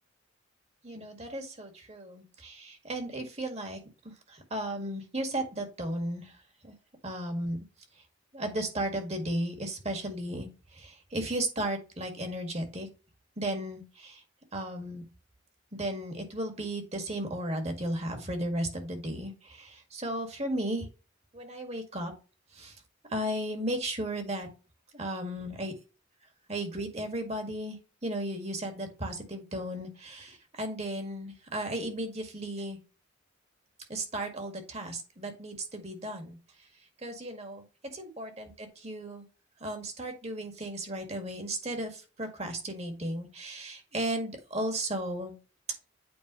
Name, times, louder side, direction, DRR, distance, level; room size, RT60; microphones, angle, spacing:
voice 1, 0.8-6.4 6.6-6.7 7.0-7.6 8.3-12.9 13.4-14.2 14.5-15.0 15.7-20.9 21.3-22.1 22.5-22.8 23.1-24.5 24.9-25.8 26.5-27.8 28.0-32.8 33.9-36.4 37.0-37.6 37.9-39.3 39.6-45.4, right 1 dB, 35° right, 5 dB, 1.8 m, -35 dB
8.8 x 4.5 x 3.0 m, 0.31 s
head